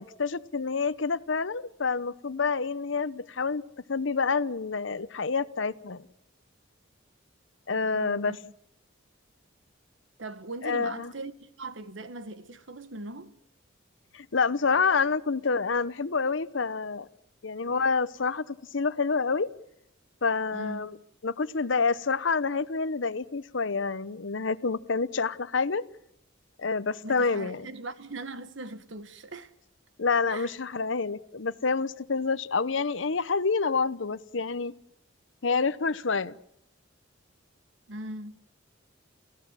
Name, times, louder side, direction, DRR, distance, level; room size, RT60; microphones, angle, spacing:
voice 1, 0.0-3.6 3.9-6.1 7.7-8.4 10.6-11.1 14.1-17.1 17.4-19.5 20.2-21.0 21.2-25.8 26.6-27.7 30.0-34.7 35.4-36.4, left 4 dB, 70° left, 0.8 m, -28 dB
voice 2, 7.7-8.5 10.2-13.3 17.7-17.8 20.5-21.0 27.0-29.5 30.3-30.5 37.9-38.4, right 2 dB, 70° right, 1.5 m, -40 dB
29.5 x 15.5 x 7.4 m
head